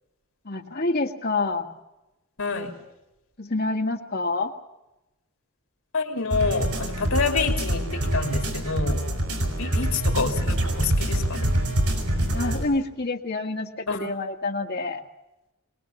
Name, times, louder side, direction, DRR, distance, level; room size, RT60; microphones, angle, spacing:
voice 1, 0.4-1.7 3.4-4.5 12.3-15.0, left 2 dB, 45° left, 2 dB, 1.9 m, -27 dB
voice 2, 2.4-2.7 5.9-9.0 9.6-11.5 13.9-14.0, left 4 dB, 75° left, 4 dB, 2.9 m, -27 dB
sound 1, 6.3-12.6, right 1 dB, 85° right, 6.4 m, -25 dB
23.0 x 20.5 x 7.2 m, 0.96 s
head